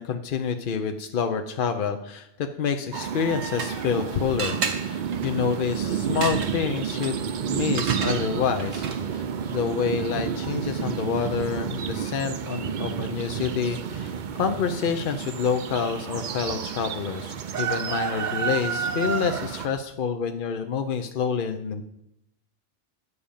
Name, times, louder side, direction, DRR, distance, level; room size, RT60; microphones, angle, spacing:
voice 1, 0.0-8.9 9.1-21.8, left 6 dB, 55° left, 7 dB, 0.6 m, -28 dB
sound 1, 2.9-19.7, right 7 dB, 55° right, 0.5 m, -30 dB
sound 2, 3.1-4.0 4.4-9.2, right 5 dB, 75° right, 1.4 m, -34 dB
9.7 x 5.1 x 7.1 m, 0.81 s
omnidirectional pair, 1.3 m